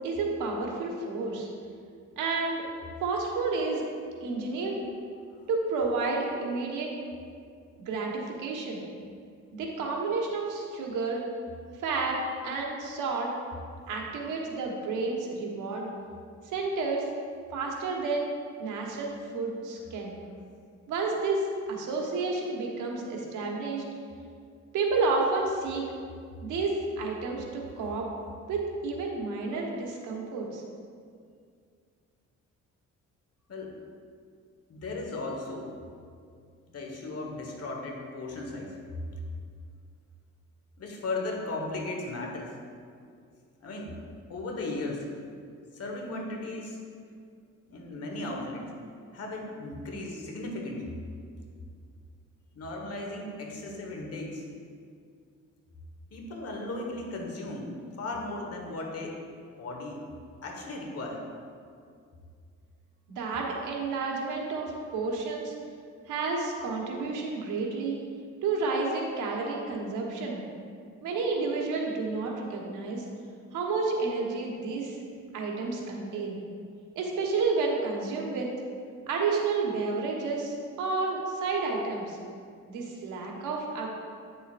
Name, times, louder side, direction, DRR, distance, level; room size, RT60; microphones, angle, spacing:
voice 1, 0.0-1.5 2.2-2.6 3.0-3.8 4.2-4.8 5.5-6.9 7.8-8.8 9.5-11.2 11.7-12.2 12.4-13.3 13.9-15.9 16.4-17.0 17.5-18.3 18.6-20.2 20.9-23.8 24.7-25.8 26.4-28.1 28.5-30.6 63.1-65.5 66.1-68.0 68.4-70.4 71.0-73.0 73.5-75.0 75.3-76.4 76.9-78.5 79.1-82.2 82.7-83.9, right 3 dB, 85° right, -1 dB, 1.2 m, -30 dB
voice 2, 33.5-33.8 34.7-35.8 36.7-38.8 39.1-39.2 40.8-42.5 43.6-43.9 44.3-45.1 45.7-46.8 47.7-48.7 49.1-51.0 52.5-54.5 56.1-59.1 59.6-60.0 60.4-61.2, left 2 dB, 55° left, 1 dB, 1.4 m, -36 dB
9.0 x 6.7 x 2.5 m, 2.2 s
cardioid pair, 90°, 30 cm